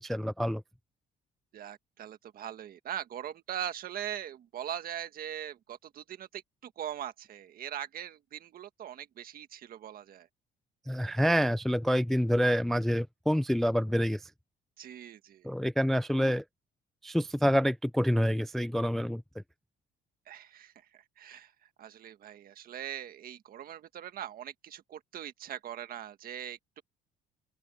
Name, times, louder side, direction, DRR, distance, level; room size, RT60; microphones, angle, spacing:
voice 1, 0.0-0.6 10.9-14.3 15.4-16.4 17.0-19.2, equal, ahead, 0.3 m, -27 dB
voice 2, 1.5-10.3 14.8-15.5 20.3-26.8, right 10 dB, 55° right, 1.6 m, -41 dB
open air
cardioid pair, 140°, 18 cm